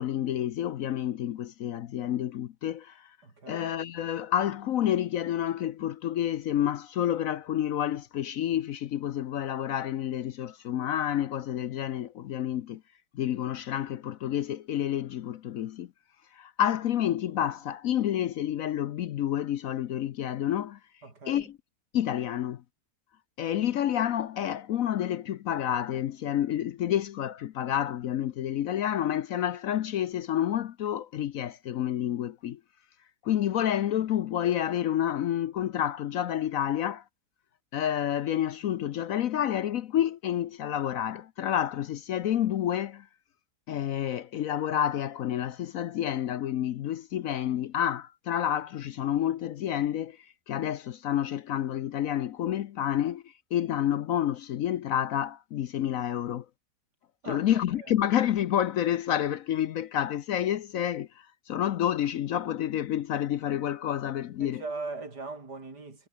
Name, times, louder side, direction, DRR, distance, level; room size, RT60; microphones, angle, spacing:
voice 1, 0.0-3.1 3.5-12.8 13.1-15.9 16.3-20.8 21.3-21.5 21.9-22.6 23.4-32.6 33.2-37.0 37.7-43.1 43.7-50.2 50.5-56.5 57.3-64.6, left 11 dB, 65° left, 1.0 m, -29 dB
voice 2, 3.2-3.7 21.0-21.5 57.2-57.5 57.8-57.9 64.4-66.1, right 3 dB, 75° right, 4.7 m, -40 dB
omnidirectional pair, 1.8 m